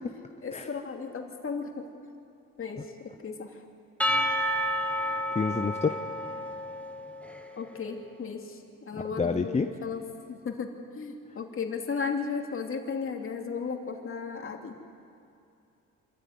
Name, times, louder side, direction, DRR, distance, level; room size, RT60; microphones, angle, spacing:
voice 1, 0.4-2.2 2.6-3.6 7.6-10.0 10.3-14.8, left 5 dB, 45° left, 2 dB, 2.7 m, -35 dB
Percussion / Church bell, 4.0-7.6, equal, 5° left, 1.4 m, -30 dB
voice 2, 5.3-6.0 9.2-9.7, left 4 dB, 20° left, 6 dB, 0.8 m, -27 dB
26.0 x 14.0 x 9.4 m, 2.6 s
cardioid pair, 90°, 30 cm